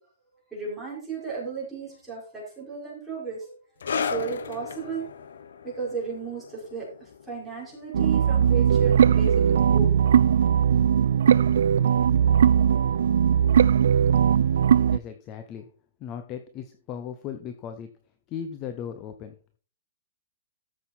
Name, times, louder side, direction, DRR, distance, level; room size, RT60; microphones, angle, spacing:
voice 1, 0.5-3.6 4.0-5.1 5.6-9.9, right 5 dB, 5° right, -6 dB, 4.9 m, -34 dB
sound 1, 3.8-10.8 11.1-11.3 12.0-12.1, left 6 dB, 75° left, 1.2 m, -36 dB
sound 2, 7.9-15.0, right 8 dB, 65° right, 0.4 m, -19 dB
voice 2, 14.9-15.7 16.0-17.9 18.3-19.4, left 8 dB, 20° left, 8 dB, 0.7 m, -37 dB
13.5 x 6.3 x 4.4 m, 0.39 s
hypercardioid pair, 175°, 0 cm